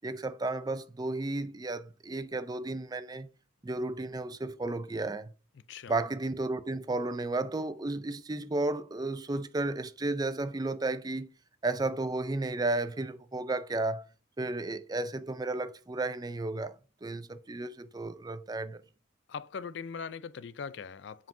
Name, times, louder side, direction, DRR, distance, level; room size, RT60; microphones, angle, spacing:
voice 1, 0.0-3.3 3.6-5.3 5.9-11.3 11.6-14.1 14.4-16.8 17.0-18.8, right 2 dB, 20° right, 0.4 m, -33 dB
voice 2, 19.3-21.3, left 6 dB, 60° left, 0.4 m, -40 dB
7.4 x 5.5 x 2.6 m
head